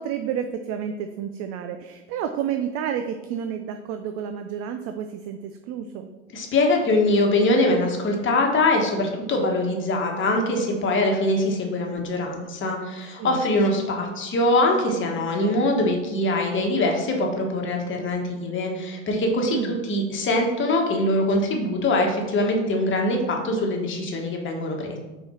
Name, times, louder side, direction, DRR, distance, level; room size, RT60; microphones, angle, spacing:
voice 1, 0.0-6.1 13.2-13.4 19.5-19.8, right 8 dB, 40° right, 7 dB, 0.5 m, -30 dB
voice 2, 6.3-25.0, left 1 dB, 30° left, 1 dB, 1.3 m, -23 dB
5.0 x 4.5 x 4.3 m, 1.1 s
hypercardioid pair, 85°, 38 cm